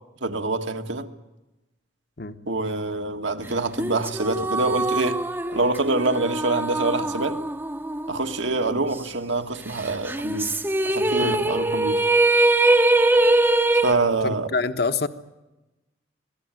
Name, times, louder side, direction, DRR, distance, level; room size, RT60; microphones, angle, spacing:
voice 1, 0.2-1.1 2.5-5.2 5.5-7.4 8.1-10.5 10.9-12.0 13.8-14.5, right 2 dB, 75° right, 1.8 m, -25 dB
sound 1, 3.8-8.4 8.7-8.8 10.1-13.9, right 2 dB, 10° right, 0.8 m, -22 dB
voice 2, 14.2-15.1, left 4 dB, 55° left, 1.3 m, -26 dB
25.5 x 17.5 x 9.2 m
head